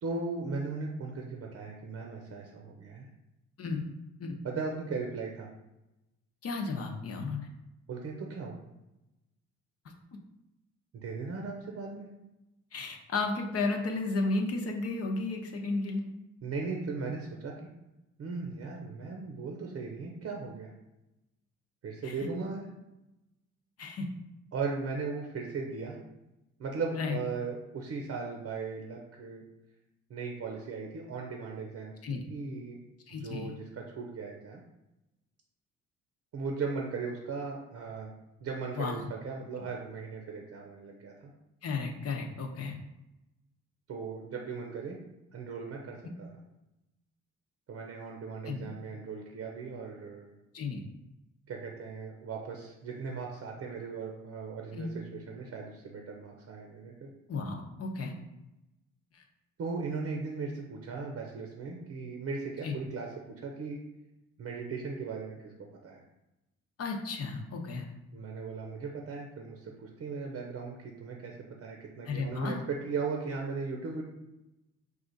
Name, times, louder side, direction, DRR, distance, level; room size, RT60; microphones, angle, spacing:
voice 1, 0.0-3.1 4.4-5.5 7.9-8.5 10.9-12.1 16.4-17.5 18.2-20.7 21.8-22.6 24.5-26.0 26.6-29.4 30.1-32.8 33.1-34.6 36.3-38.1 38.4-41.1 43.9-45.0 45.3-46.3 47.7-50.3 51.5-57.1 59.6-63.8 64.4-65.5 65.8-66.0 68.1-74.0, right 4 dB, 55° right, 0 dB, 0.7 m, -37 dB
voice 2, 6.4-7.5 12.7-16.1 22.0-22.1 23.8-24.0 27.0-27.2 32.0-32.2 33.1-33.5 38.8-39.0 41.6-42.8 46.0-46.1 48.4-48.7 50.5-50.8 54.7-54.9 57.3-58.1 59.1-59.2 62.6-62.7 66.8-67.8 72.1-72.6, left 3 dB, 50° left, 2 dB, 0.8 m, -33 dB
4.8 x 2.4 x 3.9 m, 0.95 s
cardioid pair, 90°, 30 cm